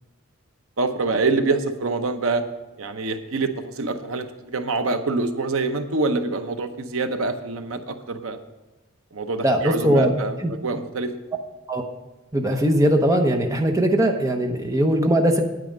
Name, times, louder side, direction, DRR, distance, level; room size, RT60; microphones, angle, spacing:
voice 1, 0.8-2.4 2.8-8.4 9.1-11.1, right 3 dB, 75° right, 8 dB, 0.8 m, -25 dB
voice 2, 9.4-10.1 10.4-10.5 11.7-11.8 12.3-15.4, right 1 dB, 15° right, 3 dB, 0.8 m, -20 dB
9.1 x 9.1 x 5.2 m, 1.1 s
head